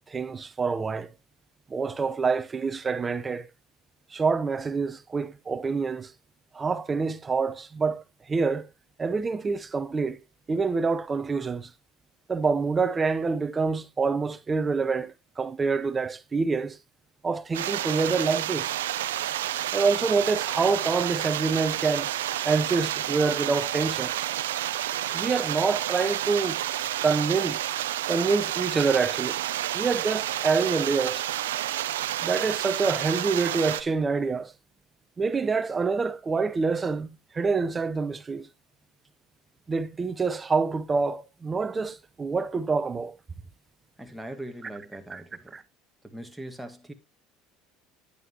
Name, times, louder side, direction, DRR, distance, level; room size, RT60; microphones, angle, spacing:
voice 1, 0.1-1.1 1.7-3.5 4.1-6.1 6.5-8.7 9.0-10.2 10.5-11.7 12.3-16.8 17.2-18.7 19.7-22.1 22.4-24.1 25.1-26.6 27.0-27.6 28.1-29.4 29.7-31.2 32.2-34.5 35.2-38.5 39.7-43.1 45.1-45.2, right 4 dB, 25° right, 1.0 m, -26 dB
sound 1, 17.5-33.8, right 12 dB, 90° right, 0.6 m, -30 dB
voice 2, 44.0-45.6 46.0-46.9, right 1 dB, 5° right, 1.9 m, -41 dB
9.9 x 9.1 x 3.0 m
hypercardioid pair, 80°, 0 cm